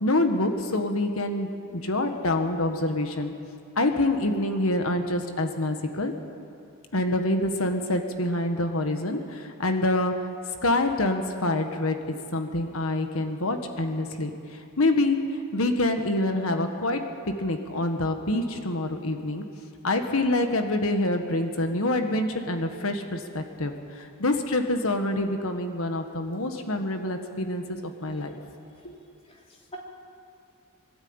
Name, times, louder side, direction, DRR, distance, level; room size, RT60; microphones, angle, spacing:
voice 1, 0.0-3.3 3.7-6.1 6.9-10.1 10.6-12.0 12.3-15.2 15.5-17.0 17.4-19.4 19.8-28.3 28.8-29.0, left 2 dB, 70° left, 5 dB, 1.6 m, -26 dB
voice 2, 29.2-29.8, right 1 dB, 30° left, -1 dB, 3.2 m, -47 dB
23.5 x 13.0 x 8.9 m, 2.4 s
head